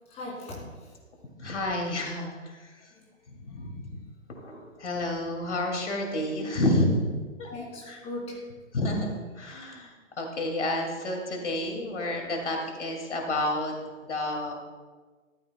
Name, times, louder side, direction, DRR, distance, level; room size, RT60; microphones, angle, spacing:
voice 1, 0.1-0.9 2.9-3.0 7.4-8.5, left 1 dB, 15° left, -3 dB, 2.6 m, -39 dB
voice 2, 1.4-2.7 3.3-3.9 4.4-7.1 7.4-7.5 7.9-8.0 8.7-13.8 14.0-14.5, left 1 dB, 60° left, 2 dB, 2.3 m, -30 dB
13.5 x 13.0 x 2.2 m, 1.4 s
figure-of-eight pair, 125°, 39 cm